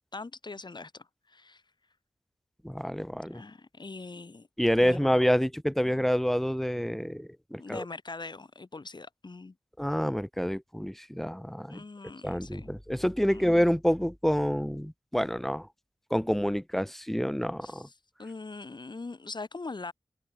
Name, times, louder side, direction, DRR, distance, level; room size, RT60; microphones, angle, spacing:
voice 1, 0.1-1.6 3.1-4.5 4.8-5.2 5.8-6.0 7.6-9.6 11.7-12.7 13.3-13.5 17.6-17.9 18.2-19.9, left 3 dB, 50° left, 7.0 m, -42 dB
voice 2, 2.6-3.4 4.6-7.8 9.8-11.8 12.2-15.7 16.1-17.9, equal, 5° left, 1.7 m, -28 dB
wide cardioid pair, 90°, 10 cm